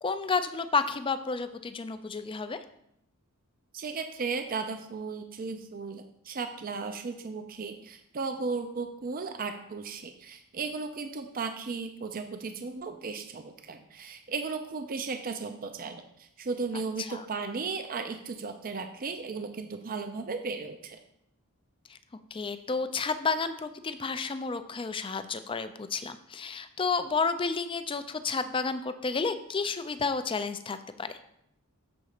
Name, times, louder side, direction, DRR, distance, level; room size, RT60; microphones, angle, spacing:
voice 1, 0.0-2.6 17.0-17.2 21.9-22.0 22.3-31.2, left 4 dB, 25° left, 11 dB, 0.4 m, -31 dB
voice 2, 3.7-21.0, right 4 dB, 40° right, 7 dB, 0.6 m, -35 dB
6.9 x 4.0 x 6.5 m, 0.76 s
head